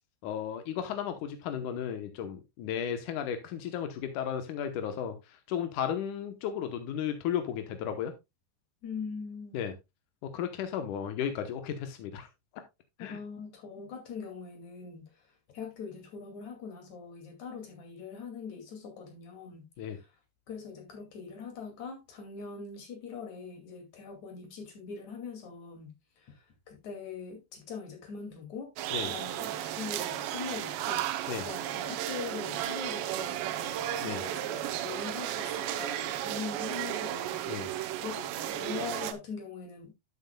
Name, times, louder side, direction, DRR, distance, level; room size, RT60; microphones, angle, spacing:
voice 1, 0.2-8.1 9.5-9.7 10.2-12.3 13.0-13.2 19.8-20.0 28.9-29.1 31.3-31.4 34.0-34.2 37.5-37.7, left 9 dB, 80° left, 1.8 m, -34 dB
voice 2, 8.8-9.7 13.0-15.1 15.5-19.6 19.9-20.1 20.5-28.7 29.0-31.0 31.4-39.9, left 5 dB, 45° left, 3.2 m, -42 dB
sound 1, 28.8-39.1, right 12 dB, 80° right, 2.9 m, -34 dB
11.0 x 8.0 x 2.2 m
omnidirectional pair, 5.0 m